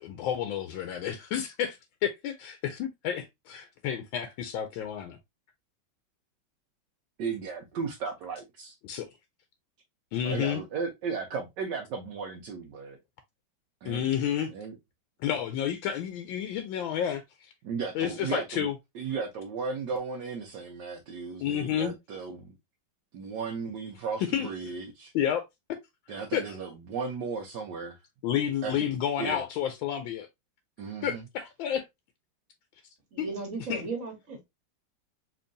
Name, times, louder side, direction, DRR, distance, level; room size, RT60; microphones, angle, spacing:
voice 1, 0.0-5.2 8.8-9.1 10.1-10.6 13.8-14.5 15.2-17.2 17.9-18.7 21.4-21.9 24.2-24.5 25.1-25.4 26.1-26.6 28.2-30.3 31.0-31.8 33.2-33.3 33.6-33.9, left 9 dB, 80° left, 1.3 m, -30 dB
voice 2, 7.2-8.7 10.2-13.0 13.8-14.0 14.5-14.7 17.6-18.7 18.9-22.5 23.1-25.1 26.1-28.0 28.6-28.9 29.2-29.4 30.8-31.2, right 5 dB, 65° right, 1.3 m, -35 dB
voice 3, 33.1-34.4, right 3 dB, 45° right, 1.5 m, -36 dB
4.4 x 3.0 x 2.5 m
omnidirectional pair, 2.1 m